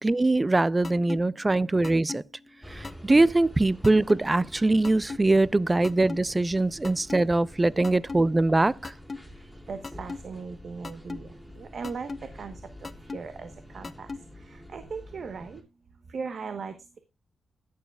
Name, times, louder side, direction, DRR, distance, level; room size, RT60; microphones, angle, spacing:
voice 1, 0.0-2.2 2.7-8.9, right 2 dB, 20° right, 0.4 m, -22 dB
sound 1, 0.8-1.2 1.8-2.2 2.8-3.2 3.8-4.2 4.8-5.2 5.8-6.2 6.8-7.2 7.8-8.2 8.8-9.2 9.8-10.2 10.8-11.2 11.8-12.2 12.8-13.2 13.8-14.2, left 4 dB, 35° left, 0.9 m, -36 dB
sound 2, 2.6-15.6, equal, 5° right, 3.1 m, -47 dB
voice 2, 9.7-15.6 16.1-17.0, right 5 dB, 60° right, 1.1 m, -39 dB
20.0 x 7.1 x 2.3 m
cardioid pair, 85°, 0 cm